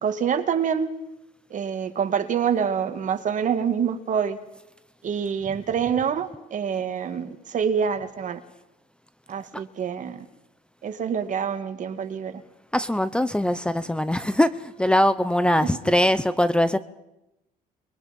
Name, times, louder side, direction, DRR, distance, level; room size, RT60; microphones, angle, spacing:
voice 1, 0.0-0.9 1.5-4.4 5.0-8.4 9.3-10.3 10.8-12.3, right 7 dB, 50° right, 8 dB, 2.4 m, -26 dB
voice 2, 12.7-16.8, left 1 dB, 5° left, 13 dB, 0.9 m, -22 dB
29.5 x 22.5 x 5.5 m, 0.91 s
cardioid pair, 110°, 17 cm